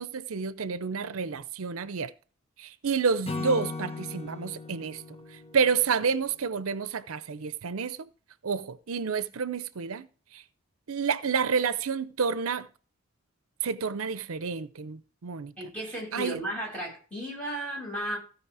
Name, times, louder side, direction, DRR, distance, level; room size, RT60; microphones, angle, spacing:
voice 1, 0.0-2.1 2.6-5.0 5.5-8.1 8.4-10.1 10.3-10.4 10.9-12.7 13.6-15.5 16.1-16.4, right 5 dB, 80° right, 0.6 m, -29 dB
Acoustic guitar / Strum, 3.3-6.6, left 3 dB, 30° left, 1.5 m, -38 dB
voice 2, 15.6-18.2, equal, 5° left, 7.0 m, -34 dB
16.0 x 5.3 x 4.8 m
head